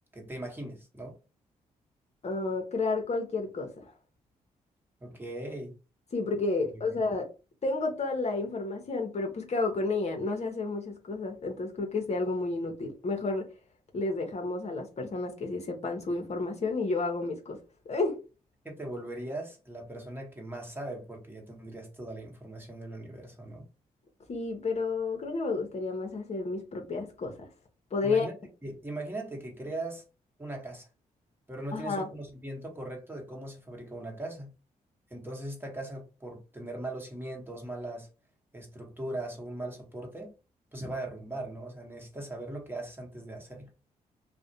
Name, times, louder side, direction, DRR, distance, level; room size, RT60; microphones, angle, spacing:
voice 1, 0.1-1.1 5.0-5.7 18.6-23.7 28.0-28.3 28.6-30.0 30.4-30.9 31.5-34.5 35.1-38.1 38.5-40.3 40.7-43.7, right 1 dB, 15° right, 1.1 m, -39 dB
voice 2, 2.2-3.9 6.1-7.3 7.6-13.5 13.9-17.6 17.9-18.2 24.3-27.5 27.9-28.3 31.7-32.1, left 3 dB, 45° left, 0.7 m, -31 dB
2.4 x 2.1 x 2.7 m
supercardioid pair, 50°, 15 cm